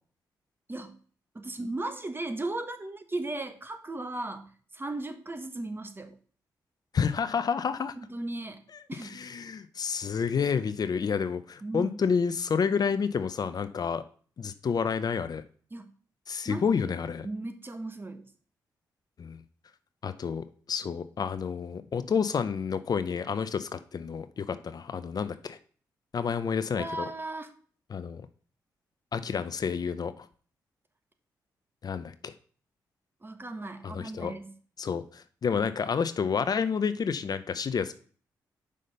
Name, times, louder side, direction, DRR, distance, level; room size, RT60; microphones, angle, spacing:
voice 1, 1.3-4.5 4.7-6.1 8.1-8.6 8.9-9.2 11.6-12.0 15.7-15.9 16.4-16.8 17.2-18.2 26.8-27.5 33.2-34.5, right 2 dB, 25° right, 8 dB, 1.3 m, -36 dB
voice 2, 6.9-7.9 8.7-14.0 14.4-15.4 16.3-17.3 19.2-19.4 20.0-25.6 26.1-27.1 27.9-28.2 29.1-30.3 31.8-32.3 33.8-34.3 34.8-37.9, left 6 dB, 55° left, 12 dB, 0.6 m, -29 dB
5.7 x 5.0 x 6.6 m, 0.43 s
supercardioid pair, 55°, 8 cm